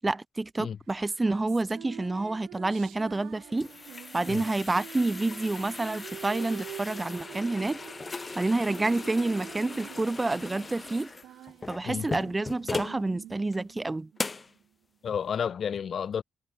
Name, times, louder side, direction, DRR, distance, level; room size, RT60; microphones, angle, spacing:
voice 1, 0.0-3.7 4.1-7.8 8.4-11.1 11.7-14.1, right 2 dB, 20° right, 0.3 m, -28 dB
sound 1, 1.0-14.6, right 12 dB, 80° right, 1.4 m, -46 dB
sound 2, 3.2-13.0 13.5-13.6 14.2-14.5, left 3 dB, 25° left, 1.7 m, -39 dB
voice 2, 15.0-16.2, left 7 dB, 55° left, 1.7 m, -31 dB
cardioid pair, 90°, 0 cm